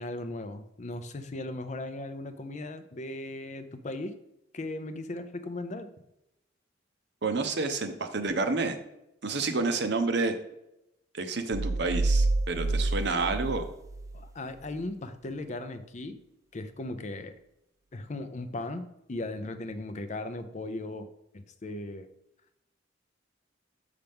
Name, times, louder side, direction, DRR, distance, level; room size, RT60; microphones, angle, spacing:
voice 1, 0.0-4.1 4.5-5.9 14.1-16.2 16.5-17.3 17.9-21.1 21.3-22.1, left 2 dB, 40° left, 9 dB, 0.5 m, -37 dB
voice 2, 7.2-8.8 9.2-10.3 11.1-13.7, right 3 dB, 60° right, 7 dB, 0.7 m, -29 dB
sound 1, 11.5-14.3, right 2 dB, 15° right, 0.3 m, -28 dB
6.5 x 5.8 x 3.5 m, 0.86 s
head